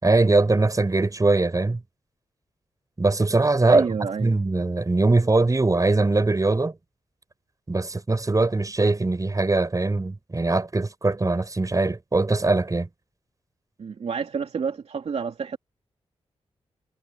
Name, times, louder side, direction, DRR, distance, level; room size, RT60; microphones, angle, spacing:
voice 1, 0.0-1.8 3.0-3.9 4.2-6.7 7.7-12.9, right 2 dB, 30° right, 7.4 m, -21 dB
voice 2, 3.7-4.4 13.8-15.6, right 6 dB, 70° right, 2.8 m, -29 dB
cardioid pair, 65°, 11 cm